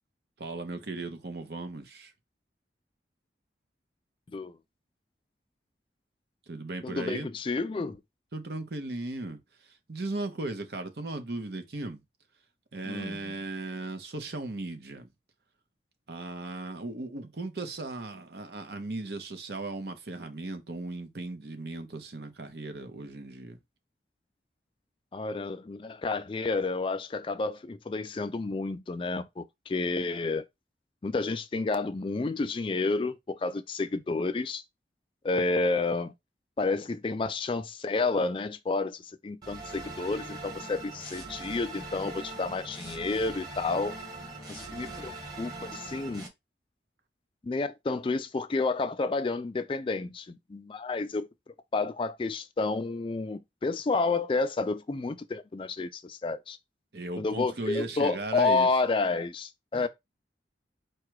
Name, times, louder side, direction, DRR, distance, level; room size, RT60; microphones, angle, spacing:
voice 1, 0.4-2.1 6.5-7.3 8.3-12.0 12.7-15.1 16.1-23.6 56.9-58.7 59.7-59.9, right 2 dB, 65° right, 0.9 m, -37 dB
voice 2, 6.8-8.0 12.9-13.3 25.1-30.4 31.0-34.6 35.2-36.1 36.6-44.0 44.5-46.3 47.4-51.3 51.7-56.6 57.2-59.9, left 3 dB, 30° left, 0.3 m, -30 dB
sound 1, 39.4-46.3, right 2 dB, 20° right, 1.3 m, -41 dB
4.7 x 2.3 x 4.6 m
head